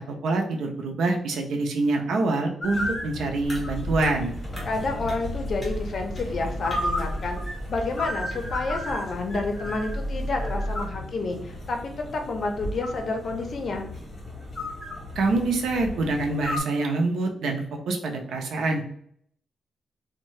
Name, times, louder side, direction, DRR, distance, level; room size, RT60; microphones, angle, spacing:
voice 1, 0.1-4.3 15.2-18.8, right 3 dB, 80° right, 3 dB, 0.5 m, -25 dB
sound 1, 2.6-16.6, left 1 dB, 30° left, 0.9 m, -35 dB
sound 2, 3.4-10.8, equal, ahead, 1.1 m, -35 dB
voice 2, 4.6-7.4 7.7-11.8 12.1-13.9, left 3 dB, 50° left, 4 dB, 0.5 m, -29 dB
2.6 x 2.1 x 3.1 m, 0.65 s
cardioid pair, 125°, 0 cm